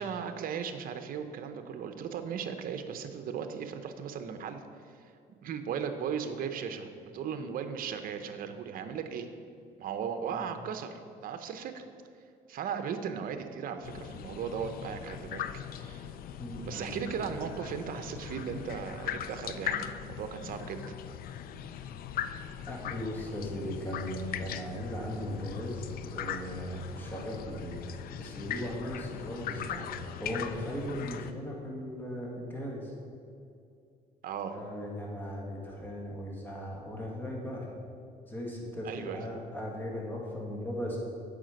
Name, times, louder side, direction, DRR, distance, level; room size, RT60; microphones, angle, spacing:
voice 1, 0.0-4.6 5.3-9.3 9.8-11.8 12.5-15.4 15.7-16.1 16.6-20.8 34.2-34.6 38.8-39.2, right 7 dB, 55° right, 8 dB, 0.8 m, -37 dB
sound 1, 13.8-31.3, left 9 dB, 60° left, 0.4 m, -40 dB
voice 2, 16.4-16.9 22.7-27.8 28.2-32.9 34.5-37.7 38.3-41.0, equal, 10° left, -2 dB, 1.8 m, -38 dB
8.8 x 5.1 x 6.4 m, 2.4 s
cardioid pair, 110°, 17 cm